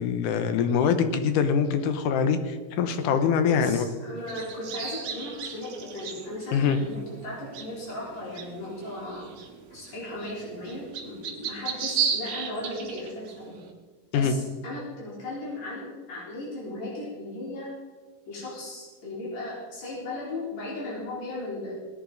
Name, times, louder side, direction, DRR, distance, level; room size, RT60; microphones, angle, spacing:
voice 1, 0.0-3.9 6.5-6.8 14.1-14.3, left 6 dB, 75° left, 9 dB, 2.2 m, -24 dB
voice 2, 3.5-9.3 9.7-13.6 14.1-17.7 18.3-21.7, left 1 dB, 50° left, -6 dB, 5.2 m, -36 dB
sound 1, 4.2-13.6, right 7 dB, 60° right, 2.1 m, -35 dB
19.0 x 10.5 x 3.9 m, 1.4 s
omnidirectional pair, 4.0 m